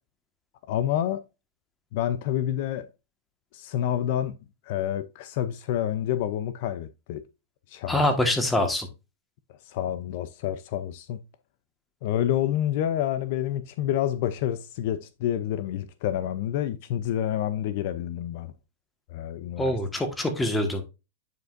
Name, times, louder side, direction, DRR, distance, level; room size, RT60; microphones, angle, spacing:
voice 1, 0.7-1.2 1.9-2.9 3.5-4.4 4.7-7.2 7.7-8.0 9.7-11.2 12.0-18.5 19.1-19.8, left 11 dB, 55° left, 0.5 m, -28 dB
voice 2, 7.9-8.9 19.6-20.8, left 1 dB, 10° left, 1.6 m, -24 dB
9.1 x 5.1 x 2.6 m
hypercardioid pair, 130°, 0 cm